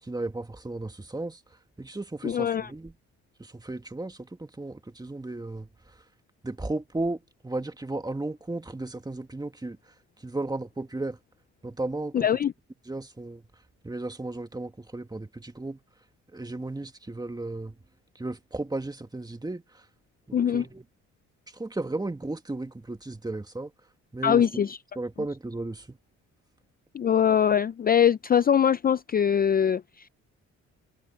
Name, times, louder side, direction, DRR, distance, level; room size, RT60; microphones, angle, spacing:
voice 1, 0.0-2.9 3.4-6.0 6.4-11.2 11.6-12.3 12.9-13.4 13.8-15.8 16.3-17.8 18.2-19.9 20.3-20.8 21.5-23.7 24.1-24.6 25.0-26.0, right 2 dB, 15° right, 2.1 m, -35 dB
voice 2, 2.2-2.7 12.1-12.5 20.3-20.6 24.2-24.8 26.9-30.1, left 8 dB, 30° left, 0.4 m, -22 dB
cardioid pair, 90°, 30 cm